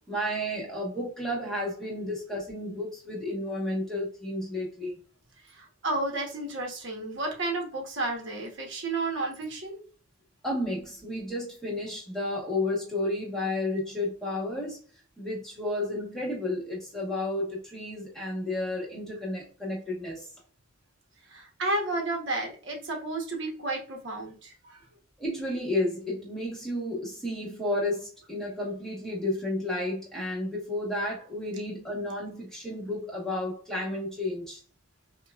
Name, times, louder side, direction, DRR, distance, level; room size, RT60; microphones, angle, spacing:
voice 1, 0.1-5.0 10.4-14.8 15.2-20.3 25.2-34.6, left 1 dB, ahead, -5 dB, 1.2 m, -32 dB
voice 2, 5.4-9.8 21.3-24.8, right 2 dB, 55° right, 0 dB, 1.0 m, -32 dB
5.7 x 2.3 x 2.4 m, 0.41 s
head